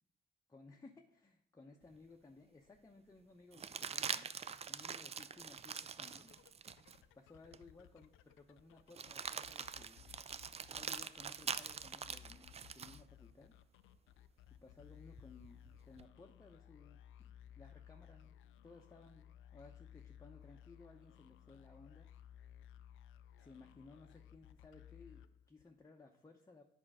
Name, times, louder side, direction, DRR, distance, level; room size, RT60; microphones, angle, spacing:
voice 1, 0.5-4.3 4.7-6.3 7.1-10.1 10.7-13.6 14.5-17.3 17.6-18.4 18.6-22.1 23.4-26.6, left 3 dB, 15° left, 2 dB, 0.8 m, -60 dB
sound 1, 1.9-2.0 3.5-7.0 7.5-7.6 8.9-13.0 15.2-16.0, right 6 dB, 30° right, 0.4 m, -44 dB
sound 2, 6.2-25.8, left 10 dB, 85° left, 0.4 m, -60 dB
8.7 x 4.4 x 6.2 m, 0.71 s
cardioid pair, 90°, 20 cm